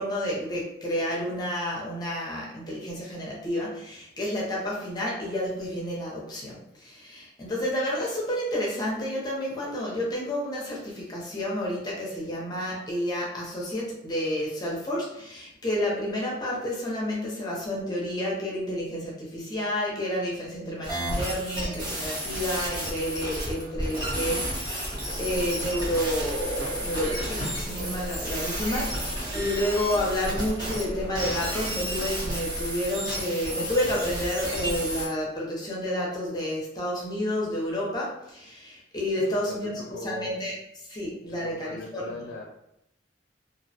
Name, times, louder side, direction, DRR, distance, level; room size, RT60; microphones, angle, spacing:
voice 1, 0.0-42.1, equal, 20° left, -4 dB, 0.5 m, -30 dB
sound 1, 20.8-30.8 31.1-35.1, equal, 25° right, 0.7 m, -32 dB
sound 2, 25.0-32.7, equal, 55° right, 0.8 m, -37 dB
voice 2, 39.2-40.3 41.3-42.4, left 1 dB, 90° left, -1 dB, 0.4 m, -40 dB
2.4 x 2.0 x 2.7 m, 0.81 s
head